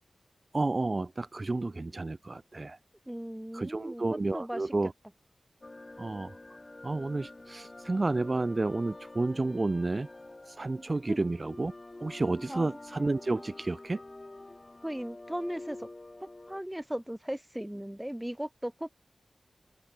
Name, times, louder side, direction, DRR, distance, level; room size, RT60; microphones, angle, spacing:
voice 1, 0.5-2.8 3.5-4.9 6.0-6.4 6.8-10.1 10.5-11.7 12.0-14.0, right 2 dB, 35° right, 0.6 m, -31 dB
voice 2, 3.1-4.7 11.1-11.2 12.5-12.7 14.8-15.9 16.2-18.9, equal, 5° right, 1.2 m, -37 dB
sound 1, 5.6-16.6, left 2 dB, 25° left, 2.9 m, -47 dB
wide cardioid pair, 95°, 0 cm